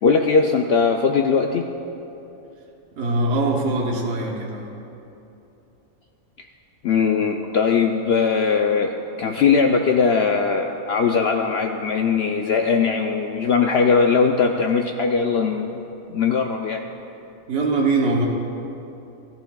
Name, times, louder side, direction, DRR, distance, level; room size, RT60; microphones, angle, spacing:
voice 1, 0.0-1.7 6.8-8.9 9.2-15.8 16.1-16.8, left 5 dB, 65° left, 3 dB, 0.7 m, -20 dB
voice 2, 3.0-4.7 17.5-18.3, right 2 dB, 55° right, -1 dB, 1.2 m, -22 dB
16.5 x 12.0 x 2.3 m, 2.9 s
omnidirectional pair, 1.4 m